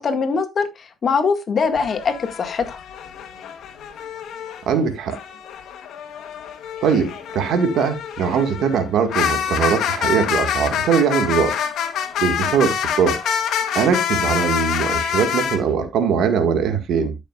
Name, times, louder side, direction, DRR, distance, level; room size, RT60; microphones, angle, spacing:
voice 1, 0.0-2.8, left 5 dB, 50° left, 2.0 m, -22 dB
sound 1, 1.7-4.6 5.1-15.6, left 8 dB, 80° left, 1.8 m, -26 dB
voice 2, 4.7-5.2 6.8-11.6 12.2-13.2 13.7-17.2, right 6 dB, 75° right, 1.9 m, -21 dB
12.5 x 6.6 x 2.5 m
cardioid pair, 90°, 0 cm